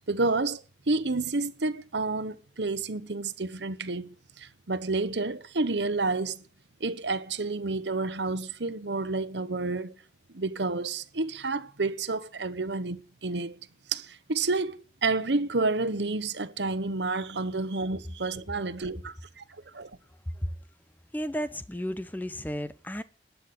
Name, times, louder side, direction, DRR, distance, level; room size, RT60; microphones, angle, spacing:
voice 1, 0.1-6.4 6.8-9.9 10.3-13.6 13.9-19.4 19.7-19.9, right 3 dB, 75° right, 1.1 m, -30 dB
voice 2, 21.1-23.0, equal, 10° left, 0.8 m, -33 dB
12.0 x 8.1 x 8.6 m
head